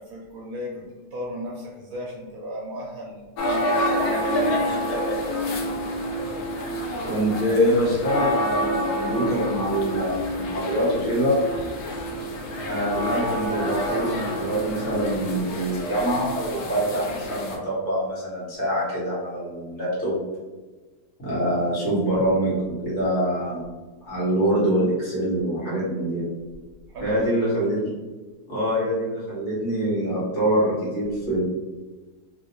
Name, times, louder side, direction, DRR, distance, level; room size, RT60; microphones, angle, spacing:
voice 1, 0.0-5.1 26.9-27.6, equal, 75° right, -3 dB, 1.1 m, -36 dB
sound 1, 3.4-17.6, equal, 90° left, 1.1 m, -27 dB
voice 2, 7.0-11.4 12.7-20.2 21.2-23.6 24.0-26.3 27.0-27.9 28.5-31.4, right 1 dB, 50° left, -8 dB, 1.8 m, -25 dB
3.2 x 2.7 x 2.8 m, 1.3 s
omnidirectional pair, 1.6 m